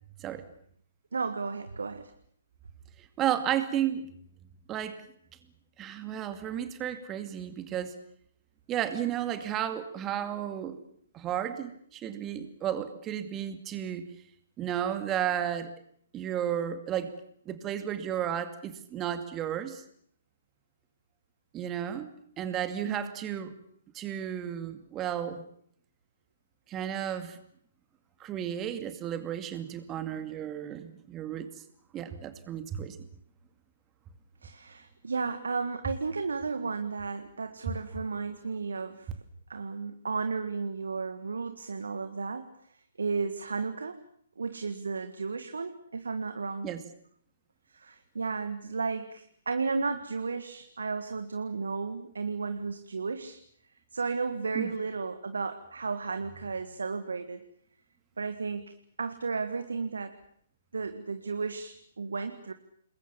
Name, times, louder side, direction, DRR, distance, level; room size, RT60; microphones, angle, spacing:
voice 1, 1.1-2.1 22.8-23.1 34.4-39.1 39.5-42.4 43.0-44.0 44.4-46.7 47.7-53.4 53.9-57.4 58.2-60.1 60.7-62.5, right 4 dB, 70° right, 8 dB, 1.9 m, -33 dB
voice 2, 3.0-4.1 4.7-5.0 5.8-7.9 8.7-10.8 11.1-14.1 14.6-15.7 16.1-17.1 17.5-19.8 21.5-22.1 22.4-23.5 23.9-25.4 26.7-27.4 28.2-31.5 31.9-33.0 46.6-46.8 54.5-54.7, right 10 dB, 20° right, 9 dB, 2.4 m, -33 dB
28.0 x 21.5 x 7.2 m, 0.65 s
figure-of-eight pair, 125°, 0 cm